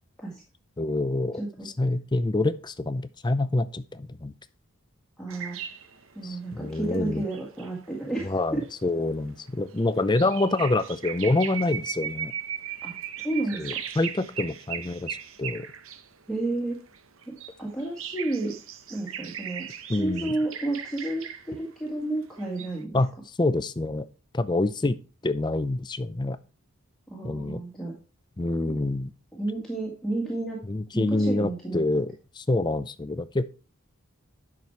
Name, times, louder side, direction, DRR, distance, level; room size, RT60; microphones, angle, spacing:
voice 1, 0.8-1.4 1.8-4.3 6.2-7.2 8.2-12.3 13.6-15.7 19.9-20.3 22.9-23.1 23.4-24.1 24.3-25.0 25.2-26.4 27.2-27.6 28.4-29.1 30.7-33.5, left 2 dB, 20° left, 13 dB, 0.4 m, -26 dB
voice 2, 1.3-1.7 5.2-5.6 6.2-8.6 12.8-12.9 13.2-13.8 16.3-16.8 17.3-18.5 18.9-23.0 27.1-27.9 29.3-30.6 30.9-32.0, right 2 dB, ahead, -4 dB, 1.7 m, -31 dB
sound 1, 5.3-16.1 16.7-21.5 22.4-22.8, right 8 dB, 65° right, 0.9 m, -38 dB
9.9 x 6.1 x 4.6 m, 0.35 s
head